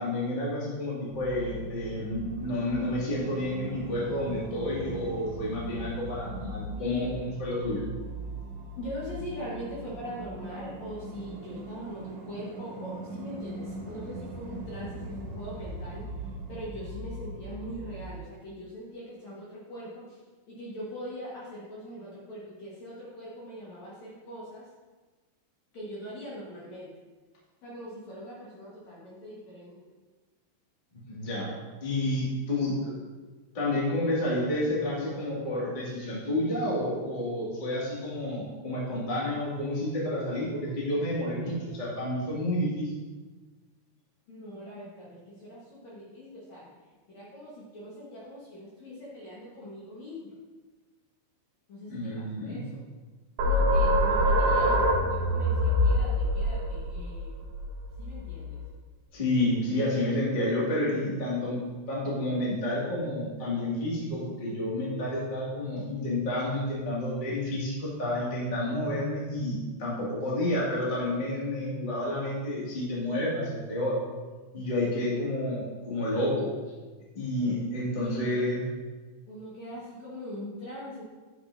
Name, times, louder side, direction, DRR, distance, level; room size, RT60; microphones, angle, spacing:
voice 1, 0.0-7.8 31.1-31.5 31.8-32.9 33.5-42.9 51.9-52.6 59.1-61.6 61.9-74.0 74.5-76.5 77.1-78.7, left 1 dB, 35° left, -7 dB, 0.7 m, -30 dB
sound 1, 1.1-18.2, right 1 dB, 90° right, 3.2 m, -40 dB
voice 2, 6.8-7.2 8.8-20.2 20.5-24.7 25.7-26.9 27.6-29.8 44.3-46.7 47.1-50.4 51.7-52.8 53.4-57.5 58.0-58.6 77.9-78.4 79.3-81.0, equal, 60° left, -6 dB, 2.0 m, -42 dB
sound 2, 53.4-58.7, equal, 70° right, 2.6 m, -25 dB
10.0 x 6.9 x 2.7 m, 1.3 s
omnidirectional pair, 5.1 m